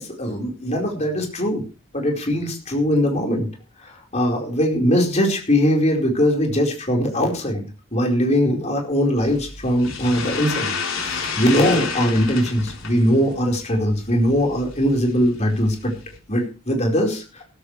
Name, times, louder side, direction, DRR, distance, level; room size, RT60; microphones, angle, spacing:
voice 1, 0.0-1.6 1.9-3.5 3.8-7.6 7.9-15.9 16.3-17.4, equal, 30° left, 1 dB, 4.6 m, -21 dB
sound 1, 9.2-16.2, left 5 dB, 70° left, 3.7 m, -31 dB
16.0 x 15.0 x 3.3 m, 0.33 s
head